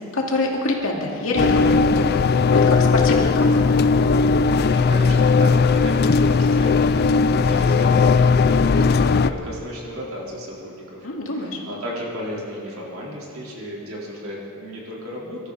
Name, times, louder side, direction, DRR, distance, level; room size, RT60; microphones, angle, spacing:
voice 1, 0.1-2.2 2.5-3.8 11.0-11.6, left 2 dB, 70° left, -1 dB, 2.4 m, -26 dB
sound 1, 1.4-9.3, left 4 dB, 50° left, 0.4 m, -17 dB
voice 2, 4.6-15.5, equal, 85° right, -4 dB, 3.9 m, -34 dB
24.5 x 13.0 x 4.1 m, 2.5 s
head